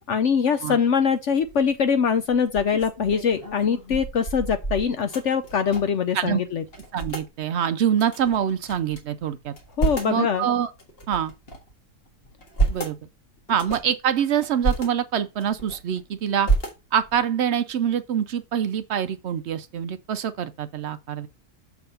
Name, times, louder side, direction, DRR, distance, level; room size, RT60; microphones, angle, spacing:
voice 1, 0.1-6.6 9.8-10.5, left 6 dB, 60° left, 0.8 m, -23 dB
sound 1, 1.4-1.8 2.3-6.1 6.3-6.4 6.7-7.3 8.0-9.0 9.4-10.2 10.8-11.7 12.2-13.0 13.5-13.9 14.4-14.9 15.3-16.0 16.4-17.2, right 3 dB, 40° left, 1.8 m, -29 dB
voice 2, 6.9-9.5 10.1-10.7 11.1-11.3 12.7-13.0 13.5-16.5 16.9-21.3, right 9 dB, 65° right, 0.7 m, -25 dB
7.0 x 3.6 x 5.5 m
omnidirectional pair, 1.7 m